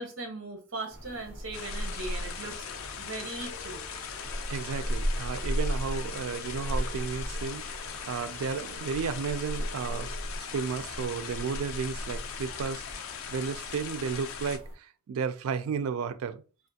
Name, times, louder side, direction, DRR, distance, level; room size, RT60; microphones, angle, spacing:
voice 1, 0.0-2.7 3.0-3.8, right 2 dB, 60° right, 0.7 m, -39 dB
sound 1, 0.9-14.7, equal, 55° left, 1.1 m, -37 dB
sound 2, 1.5-14.6, left 7 dB, 75° left, 0.4 m, -40 dB
voice 2, 4.5-12.8 13.3-16.4, right 6 dB, 80° right, 0.3 m, -33 dB
3.3 x 2.5 x 2.7 m
head